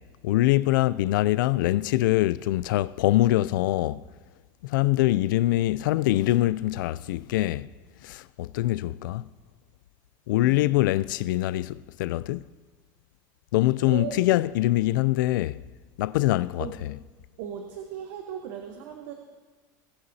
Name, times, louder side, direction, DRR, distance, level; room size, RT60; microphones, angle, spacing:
voice 1, 0.2-4.0 4.6-7.7 8.0-9.3 10.3-12.4 13.5-15.6 16.0-16.7, left 16 dB, 90° left, 0.4 m, -24 dB
voice 2, 10.4-10.9 13.8-14.2 16.6-16.8 17.4-19.1, right 9 dB, 60° right, 1.0 m, -37 dB
20.0 x 9.6 x 2.8 m
supercardioid pair, 170°, 10 cm